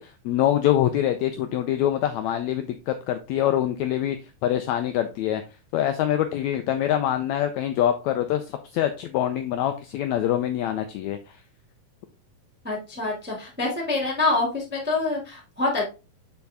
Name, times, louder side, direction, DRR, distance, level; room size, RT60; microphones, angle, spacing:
voice 1, 0.0-4.2 4.4-5.4 5.7-11.4, left 11 dB, 85° left, 1.6 m, -25 dB
voice 2, 12.6-15.8, left 3 dB, 5° right, 1.6 m, -26 dB
7.1 x 5.2 x 3.5 m
omnidirectional pair, 3.9 m